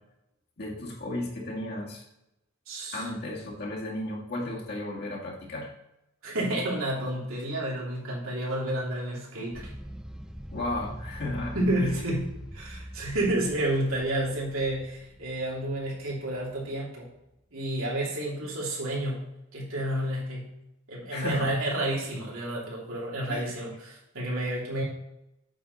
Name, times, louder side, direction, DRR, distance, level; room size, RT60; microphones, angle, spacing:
voice 1, 0.6-2.0 2.9-5.7 10.5-11.6 11.8-12.1 21.1-21.6 23.3-23.5, left 2 dB, 55° left, -2 dB, 2.1 m, -34 dB
voice 2, 2.7-3.1 6.2-9.7 11.5-17.1 17.5-19.2 19.5-20.5 20.9-24.8, right 1 dB, 85° right, -4 dB, 3.0 m, -30 dB
sound 1, 9.5-16.9, equal, 5° right, 0.4 m, -44 dB
8.5 x 6.3 x 4.1 m, 0.87 s
head